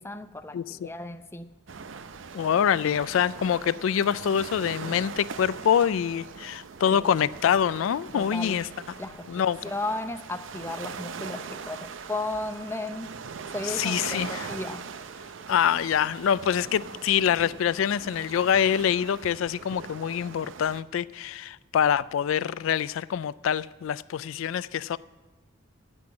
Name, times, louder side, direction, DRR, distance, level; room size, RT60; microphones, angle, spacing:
voice 1, 0.0-1.5 6.9-7.2 8.1-8.6 9.0-13.1 13.5-14.9, left 2 dB, 10° left, 0.5 m, -35 dB
voice 2, 0.5-0.9 2.3-8.7 9.3-9.6 13.6-14.5 15.5-25.0, left 8 dB, 90° left, 0.3 m, -25 dB
sound 1, 1.7-20.8, right 5 dB, 75° right, 0.6 m, -41 dB
9.8 x 8.6 x 8.6 m
head